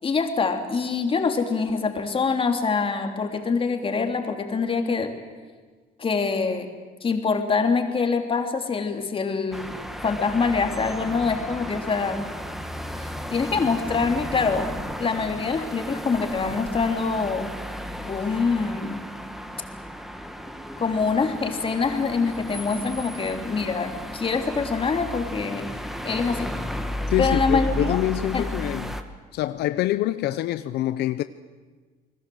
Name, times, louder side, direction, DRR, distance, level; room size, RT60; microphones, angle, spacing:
voice 1, 0.0-5.1 6.0-6.7 7.0-9.7 10.0-12.2 13.0-14.7 15.0-17.5 18.0-19.0 20.8-25.6 26.0-26.5 27.2-28.0 28.3-28.4, left 4 dB, 30° left, 3.3 m, -25 dB
sound 1, 9.5-29.0, equal, ahead, 1.9 m, -34 dB
voice 2, 27.1-29.0 29.3-31.2, left 14 dB, 80° left, 0.8 m, -25 dB
29.0 x 20.0 x 7.9 m
cardioid pair, 110°, 17 cm